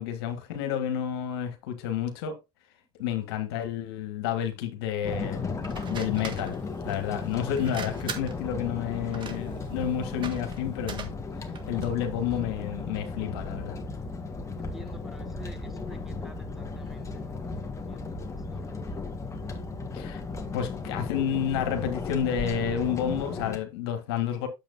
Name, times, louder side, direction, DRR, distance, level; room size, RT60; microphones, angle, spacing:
voice 1, 0.0-2.4 3.0-6.6 6.8-13.8 19.9-20.2 20.5-24.5, left 9 dB, 85° left, 1.6 m, -30 dB
sound 1, 5.0-23.6, left 3 dB, 25° left, 1.6 m, -35 dB
sound 2, 5.6-12.0, right 6 dB, 40° right, 1.6 m, -42 dB
voice 2, 14.6-19.2, left 1 dB, ahead, 2.0 m, -49 dB
8.7 x 7.3 x 2.7 m
supercardioid pair, 85°, 13 cm